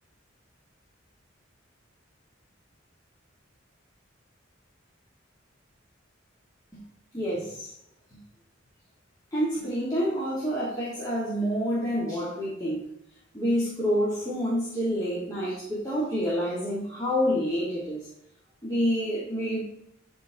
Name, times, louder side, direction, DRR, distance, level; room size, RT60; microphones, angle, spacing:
voice 1, 7.1-7.6 9.3-12.8 13.3-18.0 18.6-19.6, equal, 20° left, -8 dB, 1.9 m, -28 dB
11.5 x 4.5 x 3.4 m, 0.72 s
head